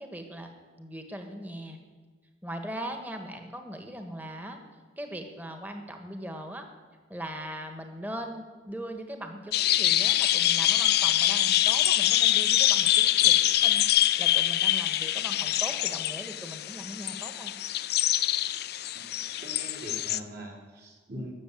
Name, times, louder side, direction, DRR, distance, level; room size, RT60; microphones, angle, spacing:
voice 1, 0.0-1.8 2.4-4.6 5.0-6.7 7.1-17.5, equal, 10° right, 5 dB, 1.4 m, -40 dB
sound 1, 9.5-20.2, left 13 dB, 55° left, 0.5 m, -24 dB
voice 2, 18.9-21.3, right 1 dB, 55° right, -1 dB, 3.2 m, -42 dB
14.5 x 6.8 x 9.4 m, 1.4 s
head